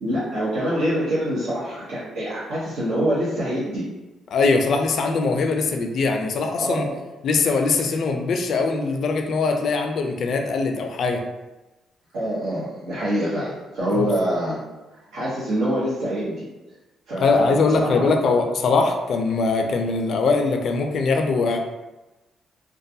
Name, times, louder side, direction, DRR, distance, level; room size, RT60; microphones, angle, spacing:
voice 1, 0.0-3.8 6.6-6.9 12.1-14.6 14.9-16.4 17.1-18.1, equal, 85° right, -10 dB, 0.8 m, -25 dB
voice 2, 4.3-6.8 7.2-11.2 13.9-14.1 17.2-21.6, left 4 dB, 60° left, 4 dB, 0.3 m, -21 dB
2.4 x 2.3 x 2.7 m, 1.1 s
cardioid pair, 90°, 0 cm